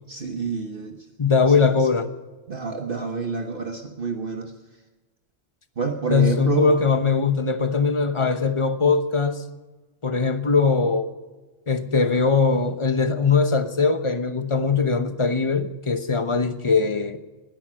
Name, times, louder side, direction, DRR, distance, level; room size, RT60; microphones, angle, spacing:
voice 1, 0.1-1.0 1.8-1.9 2.5-4.5 5.8-6.8, right 5 dB, 55° right, 3 dB, 1.3 m, -28 dB
voice 2, 1.2-2.1 6.1-9.4 10.0-11.1 11.7-17.2, left 4 dB, 30° left, 9 dB, 0.9 m, -21 dB
19.5 x 11.0 x 6.3 m, 1.2 s
omnidirectional pair, 1.2 m